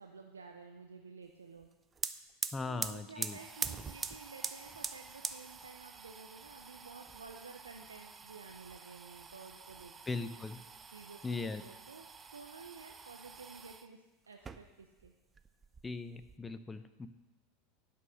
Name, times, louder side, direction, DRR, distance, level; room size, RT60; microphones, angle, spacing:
voice 1, 0.0-1.7 2.6-10.3 10.9-12.0 12.3-15.1, right 4 dB, 85° right, 3 dB, 0.7 m, -52 dB
sound 1, 1.6-1.7 1.9-13.9 14.3-15.1 15.4-16.4, right 5 dB, 25° right, 0.6 m, -44 dB
voice 2, 2.5-3.4 10.1-10.6 11.2-11.6 15.8-17.1, left 3 dB, 15° left, 11 dB, 0.7 m, -39 dB
11.0 x 5.8 x 6.3 m, 1.1 s
hypercardioid pair, 85°, 0 cm